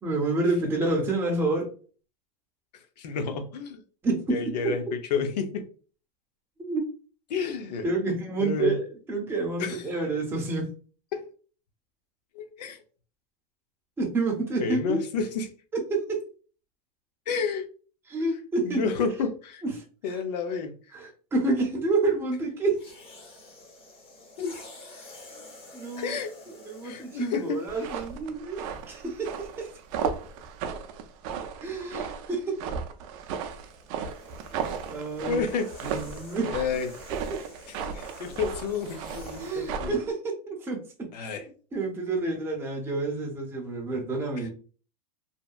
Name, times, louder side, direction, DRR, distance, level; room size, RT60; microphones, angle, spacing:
voice 1, 0.0-1.7 4.0-4.8 6.6-6.8 7.8-10.7 14.0-15.0 15.7-16.2 18.1-18.9 19.6-19.8 20.9-22.8 25.7-26.2 26.6-29.7 31.6-32.6 34.5-35.4 35.8-36.5 37.1-37.4 39.4-41.4 41.7-44.5, right 3 dB, 10° right, 0 dB, 0.6 m, -29 dB
voice 2, 2.7-3.8 4.3-4.8 5.1-5.6 7.3-7.9 8.4-8.8 9.6-9.8 11.1-11.2 12.3-12.8 14.6-15.5 17.3-17.7 18.6-19.6 20.0-20.8 24.4-24.5 26.0-26.3 26.8-27.6 35.3-35.7 36.4-36.9 37.7-40.0 41.1-41.4 44.4-44.5, left 5 dB, 85° left, 7 dB, 0.6 m, -30 dB
sound 1, 22.7-28.2 29.0-29.3 33.2-39.9, left 2 dB, 25° left, 0.8 m, -49 dB
sound 2, 27.7-40.1, right 6 dB, 50° right, 0.4 m, -35 dB
2.7 x 2.2 x 2.3 m, 0.39 s
supercardioid pair, 135°, 21 cm